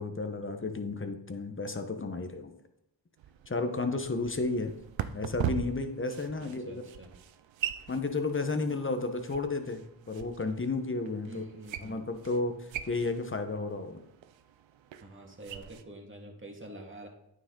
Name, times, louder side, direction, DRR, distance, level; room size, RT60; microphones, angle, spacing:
voice 1, 0.0-2.5 3.5-4.7 5.1-6.8 7.9-11.4 11.8-12.5 12.9-14.0, left 3 dB, 25° left, 7 dB, 1.1 m, -32 dB
sound 1, 3.2-15.8, right 10 dB, 85° right, 0.6 m, -41 dB
voice 2, 6.4-7.1 11.3-12.1 15.0-17.1, right 2 dB, 25° right, 1 dB, 2.0 m, -47 dB
9.2 x 6.4 x 3.8 m, 0.80 s
cardioid pair, 65°, 44 cm